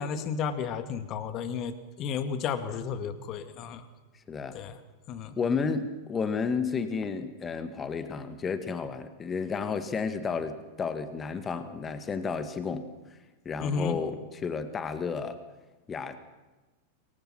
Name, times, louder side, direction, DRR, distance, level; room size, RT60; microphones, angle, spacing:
voice 1, 0.0-3.8 4.5-4.7 5.1-5.4 13.6-14.0, left 6 dB, 35° left, 10 dB, 2.2 m, -32 dB
voice 2, 4.3-4.6 5.4-12.9 13.5-15.4 15.9-16.2, left 5 dB, 20° left, 10 dB, 1.9 m, -32 dB
27.0 x 23.0 x 6.0 m, 1.1 s
figure-of-eight pair, 90°, 0 cm